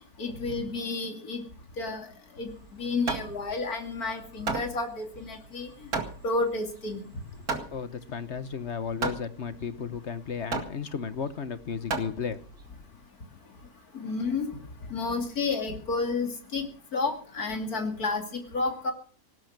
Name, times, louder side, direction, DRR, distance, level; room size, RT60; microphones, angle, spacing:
voice 1, 0.2-1.4 1.8-2.1 2.4-5.7 6.2-7.0 13.9-14.5 14.9-16.7 16.9-18.2 18.5-18.9, left 3 dB, 70° left, 4 dB, 3.1 m, -30 dB
Hammer, 2.5-12.7, right 4 dB, 70° right, 2.7 m, -36 dB
voice 2, 7.7-12.4, left 6 dB, 50° left, 13 dB, 1.2 m, -34 dB
19.0 x 11.0 x 6.0 m, 0.42 s
omnidirectional pair, 1.6 m